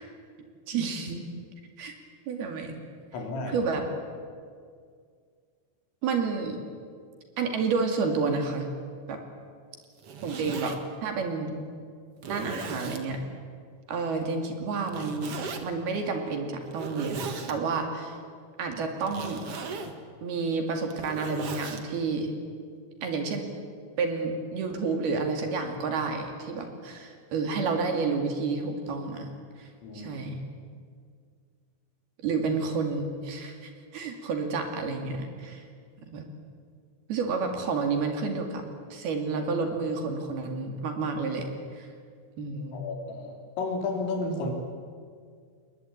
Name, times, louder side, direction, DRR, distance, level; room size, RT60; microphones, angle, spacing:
voice 1, 0.7-1.3 1.8-1.9 2.3-2.8 3.5-3.9 6.0-6.6 7.4-8.7 9.1-9.2 10.2-11.6 12.3-13.2 13.9-18.2 18.6-19.4 20.2-22.3 23.0-23.5 24.0-29.3 29.6-29.7 29.9-30.4 32.2-35.6 36.1-36.3 37.1-38.7 38.9-41.5 41.7-41.9 42.4-42.8, right 4 dB, 55° right, 4 dB, 4.0 m, -30 dB
voice 2, 3.1-3.6 29.8-30.1 42.7-44.5, left 3 dB, 85° left, 2 dB, 6.1 m, -32 dB
Zipper (clothing), 9.8-10.8 11.5-11.6 12.2-13.0 14.9-15.6 16.6-17.5 19.0-19.9 20.7-21.8, right 4 dB, 70° right, 1.3 m, -37 dB
28.0 x 21.0 x 8.8 m, 2.1 s
omnidirectional pair, 5.7 m